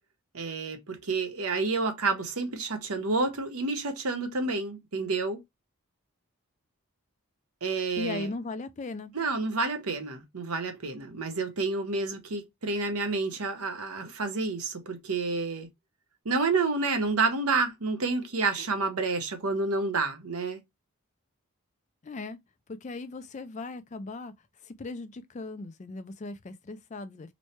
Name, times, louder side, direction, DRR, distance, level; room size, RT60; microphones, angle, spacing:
voice 1, 0.3-5.4 7.6-8.3 9.1-15.7 16.2-20.6, right 3 dB, 85° right, 0.9 m, -29 dB
voice 2, 8.0-9.1 22.0-22.4 22.7-24.3 24.6-27.3, left 3 dB, 30° left, 0.4 m, -38 dB
3.1 x 2.2 x 4.2 m
head